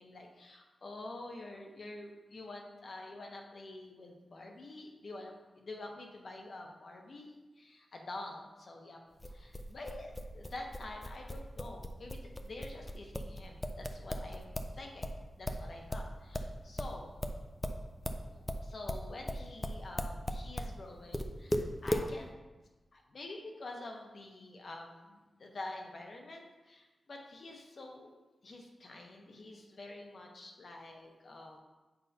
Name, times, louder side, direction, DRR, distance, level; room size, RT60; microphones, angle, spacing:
voice 1, 0.0-15.1 15.4-17.1 18.3-22.3 22.9-28.1 28.4-31.6, left 2 dB, 50° left, 1 dB, 0.9 m, -47 dB
sound 1, 9.2-14.7 15.0-20.7 21.1-22.1, left 1 dB, 10° left, 0.4 m, -37 dB
8.0 x 5.5 x 2.8 m, 1.2 s
wide cardioid pair, 150°, 0 cm